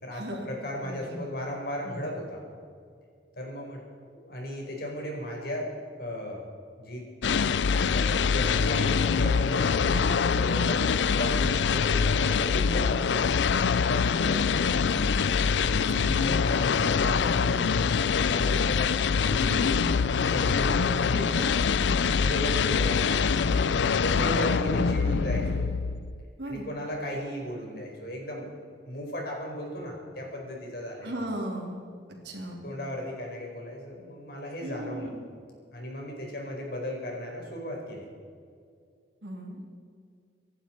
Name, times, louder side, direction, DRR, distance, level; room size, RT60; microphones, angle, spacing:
voice 1, 0.0-2.4 3.4-3.8 4.1-5.7 6.0-6.5 6.8-7.0 7.9-13.3 13.9-15.1 15.5-17.8 18.3-18.9 19.2-19.7 20.2-21.5 22.2-23.7 24.0-25.6 26.5-28.5 28.8-31.1 32.6-35.1 35.7-38.1, left 1 dB, 55° left, -1 dB, 4.7 m, -36 dB
voice 2, 0.8-1.2 1.8-2.0 9.8-10.3 15.9-16.2 19.4-19.9 24.1-25.3 26.4-26.7 31.0-31.8 32.2-32.6 34.6-35.2 39.2-39.6, right 1 dB, 70° right, 0 dB, 3.3 m, -37 dB
sound 1, 7.2-26.2, left 5 dB, 80° left, 0.4 m, -24 dB
26.0 x 11.5 x 4.6 m, 2.2 s
head